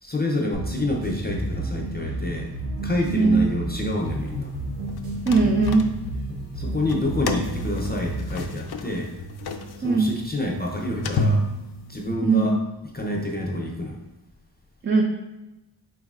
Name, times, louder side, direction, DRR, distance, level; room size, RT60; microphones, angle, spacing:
voice 1, 0.0-2.5 2.8-4.5 6.6-9.1 9.8-11.5 11.9-12.6 12.9-14.0, left 1 dB, 25° left, 0 dB, 0.6 m, -27 dB
sound 1, 0.5-8.6, right 1 dB, 90° right, 1.1 m, -31 dB
voice 2, 3.1-3.4 5.3-5.8 9.8-10.1 12.2-12.6 14.8-15.0, right 4 dB, 30° right, 2 dB, 0.4 m, -19 dB
sound 2, 4.9-6.3 6.8-12.1, left 1 dB, 65° left, 0.5 m, -30 dB
4.5 x 4.0 x 2.4 m, 0.99 s
cardioid pair, 50°, 41 cm